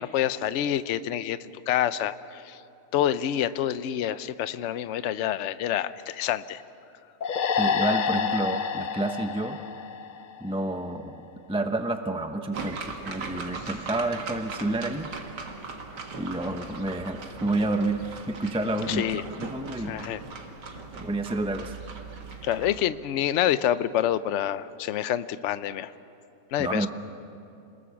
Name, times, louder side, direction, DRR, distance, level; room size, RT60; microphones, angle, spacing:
voice 1, 0.0-2.6 2.9-6.6 18.9-19.2 19.9-20.2 22.4-25.9 26.5-26.9, left 11 dB, 60° left, 14 dB, 0.8 m, -27 dB
sound 1, 7.2-10.7, left 6 dB, 85° left, 0.4 m, -28 dB
voice 2, 7.6-9.6 10.4-11.1 11.5-15.5 16.2-20.0 21.0-21.8 26.6-26.9, right 2 dB, 5° right, 6 dB, 0.5 m, -29 dB
sound 2, 12.5-22.8, right 4 dB, 90° right, 2.3 m, -39 dB
27.5 x 20.5 x 7.1 m, 2.7 s
omnidirectional pair, 1.8 m